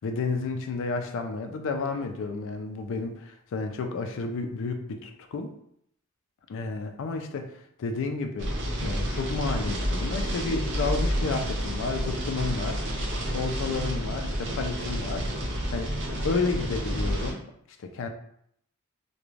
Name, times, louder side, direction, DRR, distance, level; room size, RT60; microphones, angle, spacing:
voice 1, 0.0-5.5 6.5-7.5 7.8-8.5 8.8-12.8 13.3-15.3 15.7-15.9 16.2-17.4 17.8-18.1, left 4 dB, 60° left, 5 dB, 0.4 m, -31 dB
sound 1, 8.4-17.3, equal, 55° right, 0.6 m, -30 dB
3.1 x 2.2 x 2.4 m, 0.71 s
head